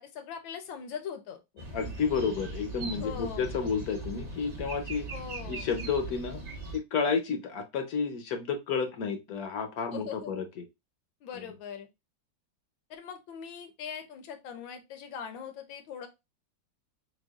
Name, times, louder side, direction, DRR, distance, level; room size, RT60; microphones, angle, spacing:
voice 1, 0.0-1.4 3.0-3.5 5.1-5.7 9.9-10.3 11.2-11.9 12.9-16.1, left 7 dB, 80° left, 6 dB, 1.6 m, -41 dB
sound 1, 1.6-6.8, right 2 dB, 35° right, 0.7 m, -39 dB
voice 2, 1.7-5.1 5.5-6.4 6.7-10.6, left 5 dB, 65° left, 6 dB, 1.0 m, -31 dB
6.4 x 2.3 x 2.3 m, 0.23 s
omnidirectional pair, 2.1 m